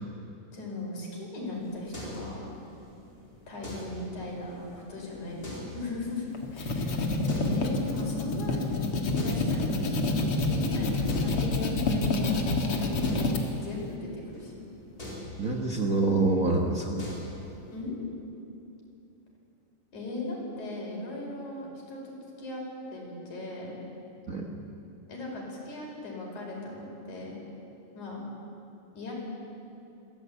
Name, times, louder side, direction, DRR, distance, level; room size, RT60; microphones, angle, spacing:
voice 1, 0.5-2.5 3.5-6.2 6.5-14.5 17.7-18.0 19.9-22.6 22.9-23.8 25.1-27.4 27.9-28.2 28.9-29.1, left 2 dB, 85° left, -3 dB, 6.5 m, -38 dB
sound 1, 1.4-17.8, left 1 dB, 30° left, 4.9 m, -45 dB
sound 2, 6.3-13.4, left 2 dB, 50° left, 2.6 m, -28 dB
voice 2, 15.4-17.1 24.3-24.5, right 3 dB, 40° right, 2 dB, 1.4 m, -26 dB
22.5 x 16.5 x 8.5 m, 2.8 s
omnidirectional pair, 3.3 m